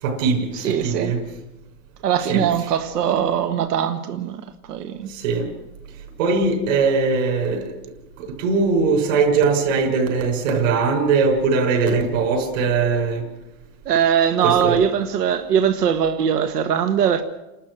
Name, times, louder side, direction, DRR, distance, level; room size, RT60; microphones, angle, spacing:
voice 1, 0.0-1.2 2.3-2.4 5.1-5.5 6.2-7.7 8.2-13.2 14.4-14.8, right 4 dB, 55° right, 5.8 m, -20 dB
voice 2, 0.5-1.1 2.0-4.4 4.7-5.1 13.8-17.2, right 8 dB, 90° right, 1.7 m, -21 dB
29.5 x 13.0 x 7.7 m
supercardioid pair, 165°, 46 cm